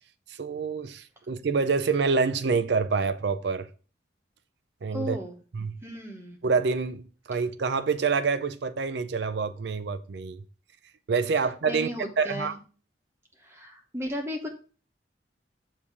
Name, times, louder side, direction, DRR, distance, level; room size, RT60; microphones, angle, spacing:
voice 1, 0.3-3.7 4.8-5.2 5.5-5.8 6.4-10.4 11.1-11.9 12.2-12.5, right 5 dB, 60° right, 0.5 m, -27 dB
voice 2, 4.9-5.4 5.8-6.4 11.7-12.6 13.4-14.5, left 1 dB, 15° right, 1.0 m, -35 dB
7.1 x 2.7 x 4.8 m
head